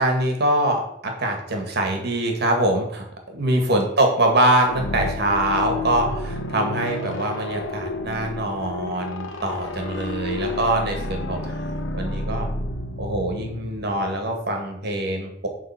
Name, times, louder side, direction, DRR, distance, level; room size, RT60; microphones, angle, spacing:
voice 1, 0.0-11.6 11.9-12.5 13.0-15.5, right 1 dB, 55° right, 3 dB, 2.0 m, -23 dB
sound 1, 4.6-14.4, left 2 dB, 75° left, 1.0 m, -31 dB
10.5 x 3.8 x 5.9 m, 0.76 s
head